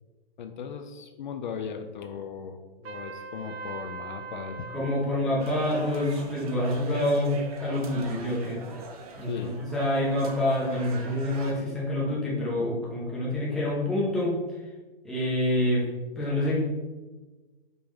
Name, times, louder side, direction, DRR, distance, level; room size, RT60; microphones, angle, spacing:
voice 1, 0.4-4.7 9.2-9.6, left 6 dB, 50° left, 6 dB, 0.5 m, -37 dB
Trumpet, 2.8-5.1, right 4 dB, 90° right, 0.6 m, -40 dB
voice 2, 4.7-8.6 9.2-14.6 15.0-15.9 16.2-16.6, left 1 dB, ahead, -7 dB, 0.6 m, -27 dB
sound 1, 5.4-11.5, right 3 dB, 40° right, 0.6 m, -43 dB
5.2 x 2.9 x 3.5 m, 1.2 s
hypercardioid pair, 150°, 30 cm